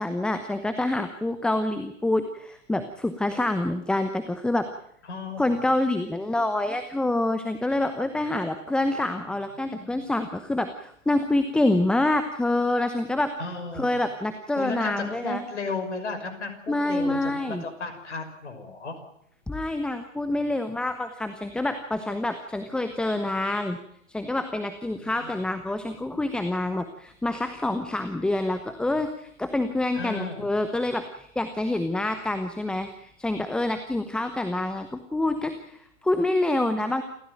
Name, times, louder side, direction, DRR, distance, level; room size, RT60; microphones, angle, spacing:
voice 1, 0.0-4.7 5.4-13.3 13.8-15.4 16.7-17.6 19.5-23.8 24.1-37.0, left 2 dB, ahead, 9 dB, 0.9 m, -27 dB
voice 2, 5.1-5.6 9.7-10.0 13.4-13.9 14.5-19.0 25.0-25.3 29.9-30.4, left 3 dB, 65° left, 8 dB, 6.2 m, -34 dB
28.5 x 14.5 x 9.2 m, 0.72 s
figure-of-eight pair, 120°, 38 cm